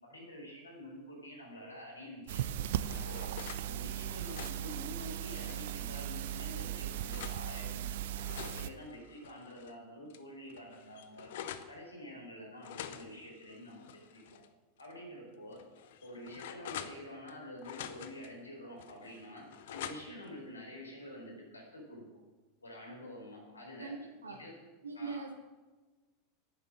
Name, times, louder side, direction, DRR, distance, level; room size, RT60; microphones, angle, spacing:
voice 1, 0.0-2.4 2.9-3.3 3.6-11.4 11.7-14.4 14.8-15.6 16.0-22.0 22.6-24.0 24.3-24.6 24.9-25.3, left 1 dB, 80° left, -1 dB, 4.5 m, -48 dB
sound 1, 2.3-8.7, right 11 dB, 60° right, 0.6 m, -38 dB
sound 2, 2.4-3.7 4.1-5.7 6.3-7.4 8.0-9.7 10.1-10.2 10.5-11.7 12.6-14.5 14.8-14.9 15.5-17.3 17.6-18.3 18.8-20.3, left 10 dB, 60° left, 0.9 m, -47 dB
voice 2, 23.8-24.4 24.8-25.4, right 4 dB, 75° right, 4 dB, 1.9 m, -41 dB
11.0 x 9.8 x 7.6 m, 1.2 s
figure-of-eight pair, 85°, 0 cm